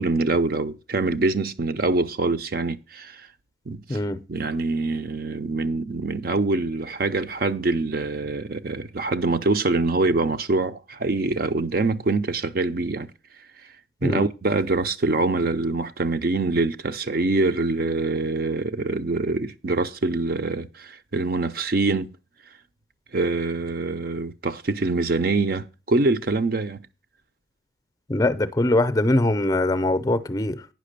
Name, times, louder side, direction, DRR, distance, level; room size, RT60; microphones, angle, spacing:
voice 1, 0.0-3.3 3.7-4.0 4.3-13.1 14.0-22.1 23.1-26.8, right 3 dB, 50° right, 0.6 m, -24 dB
voice 2, 28.1-30.7, left 1 dB, 20° left, 0.5 m, -22 dB
9.3 x 5.8 x 6.6 m
head